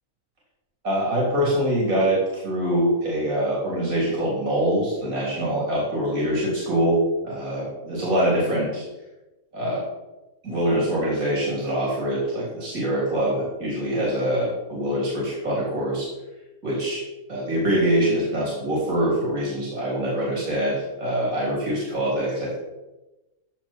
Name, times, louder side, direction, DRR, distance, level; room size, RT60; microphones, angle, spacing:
voice 1, 0.8-8.8 9.5-9.8 10.4-16.1 16.6-17.0 17.3-22.5, right 1 dB, 65° right, -4 dB, 4.1 m, -24 dB
15.0 x 7.6 x 4.6 m, 1.0 s
omnidirectional pair, 1.6 m